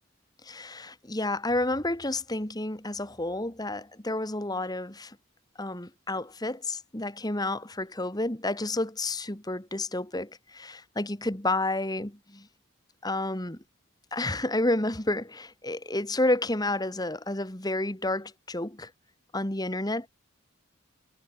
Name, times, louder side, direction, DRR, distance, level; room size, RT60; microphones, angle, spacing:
voice 1, 0.4-5.2 5.6-12.5 13.0-13.6 14.1-18.9 19.3-20.1, left 2 dB, 20° left, 2.0 m, -30 dB
head